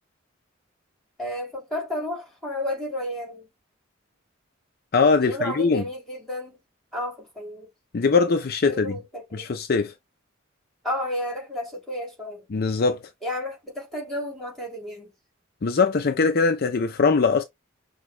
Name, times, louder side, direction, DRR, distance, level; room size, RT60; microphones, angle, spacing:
voice 1, 1.2-3.5 5.2-6.6 6.9-7.7 8.6-9.5 10.8-12.4 13.2-15.1, left 1 dB, ahead, 2.9 m, -32 dB
voice 2, 4.9-5.8 7.9-9.0 9.3-9.9 12.5-13.0 15.6-17.4, left 4 dB, 50° left, 0.5 m, -21 dB
6.2 x 2.3 x 3.1 m
head